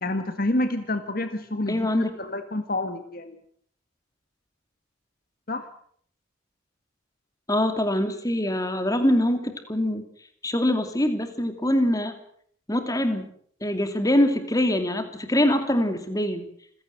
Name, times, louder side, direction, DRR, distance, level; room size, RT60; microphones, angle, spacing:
voice 1, 0.0-1.9 2.2-3.4 5.5-5.7, left 1 dB, 45° left, 9 dB, 1.6 m, -28 dB
voice 2, 1.7-2.1 7.5-10.0 10.4-12.1 12.7-13.3 13.6-16.4, left 1 dB, 15° left, 8 dB, 2.6 m, -24 dB
27.5 x 16.0 x 7.9 m, 0.62 s
head